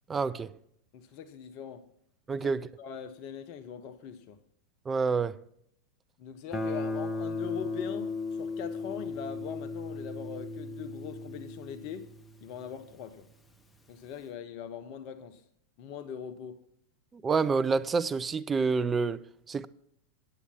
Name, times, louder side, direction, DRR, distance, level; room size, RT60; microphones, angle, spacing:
voice 1, 0.1-0.5 2.3-2.7 4.9-5.4 17.1-19.2 19.5-19.7, right 4 dB, 15° right, 0.4 m, -28 dB
voice 2, 0.9-1.9 2.3-2.5 2.8-4.4 6.2-12.1 12.4-13.3 13.9-15.4 15.8-16.6, left 8 dB, 45° left, 0.6 m, -41 dB
Guitar, 6.5-13.2, left 3 dB, 10° left, 0.8 m, -36 dB
9.0 x 8.2 x 5.7 m
figure-of-eight pair, 90°, 0 cm